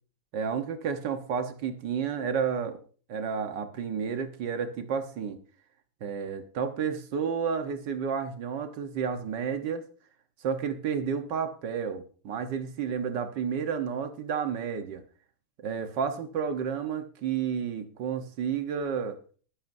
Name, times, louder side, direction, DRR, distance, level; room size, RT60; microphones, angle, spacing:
voice 1, 0.3-2.8 3.1-5.4 6.0-9.8 10.4-15.0 15.6-19.2, right 7 dB, 85° right, 7 dB, 1.8 m, -31 dB
22.0 x 8.6 x 2.7 m, 0.41 s
omnidirectional pair, 1.9 m